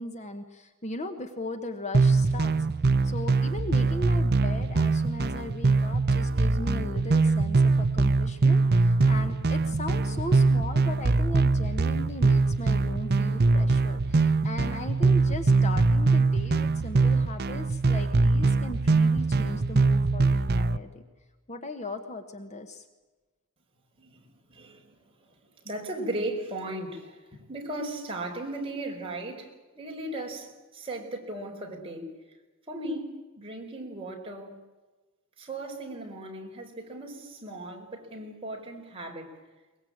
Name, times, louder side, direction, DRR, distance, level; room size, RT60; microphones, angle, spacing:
voice 1, 0.0-2.5 3.0-21.0 21.5-22.8, left 2 dB, 30° left, 7 dB, 1.4 m, -38 dB
sound 1, 1.9-20.8, right 3 dB, 45° right, 0.7 m, -23 dB
voice 2, 24.0-25.4 25.6-32.1 32.7-33.1 33.4-34.6 35.4-39.3, right 1 dB, 25° right, 0 dB, 4.8 m, -37 dB
23.0 x 21.0 x 8.8 m, 1.2 s
head